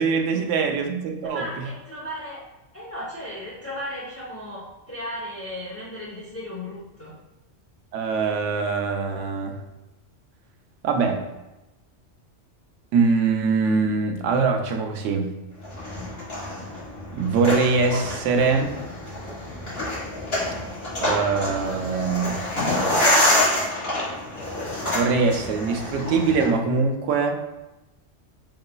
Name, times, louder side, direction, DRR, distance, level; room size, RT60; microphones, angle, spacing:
voice 1, 0.0-1.7 7.9-9.6 10.8-11.2 12.9-15.3 17.1-18.7 21.0-22.4 24.9-27.4, right 4 dB, 90° right, 4 dB, 0.9 m, -23 dB
voice 2, 1.2-2.4 2.7-7.1, left 1 dB, 15° left, -5 dB, 0.5 m, -35 dB
sound 1, 15.6-26.5, left 1 dB, 55° left, 1.9 m, -26 dB
3.9 x 3.8 x 2.2 m, 1.0 s
omnidirectional pair, 1.2 m